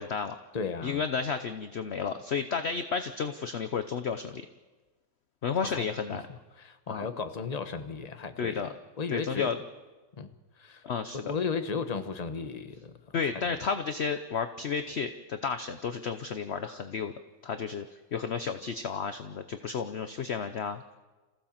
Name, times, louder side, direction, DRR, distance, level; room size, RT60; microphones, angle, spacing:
voice 1, 0.0-0.4 0.8-4.4 5.4-6.2 6.9-7.0 8.4-8.7 9.1-9.6 10.8-11.2 13.1-17.1 17.4-17.8 18.1-20.9, left 6 dB, 50° left, 9 dB, 0.8 m, -32 dB
voice 2, 0.5-1.0 5.6-8.7 9.0-9.5 10.2-10.3 10.6-10.8 11.2-13.0 13.4-13.6, left 5 dB, 25° left, 9 dB, 1.0 m, -35 dB
27.0 x 15.5 x 7.3 m, 1.2 s
omnidirectional pair, 1.9 m